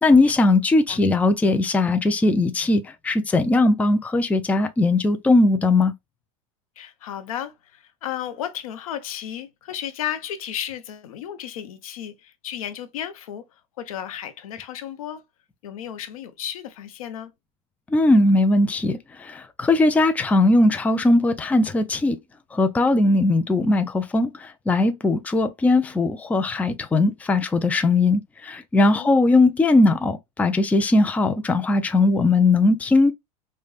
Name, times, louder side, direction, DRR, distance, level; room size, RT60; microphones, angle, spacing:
voice 1, 0.0-5.9 17.9-22.2 22.5-33.1, left 2 dB, 10° left, 0.4 m, -19 dB
voice 2, 6.8-15.2 15.6-17.3 23.0-23.2 28.9-29.3, left 10 dB, 85° left, 0.8 m, -34 dB
5.0 x 2.2 x 2.3 m
supercardioid pair, 120°, 18 cm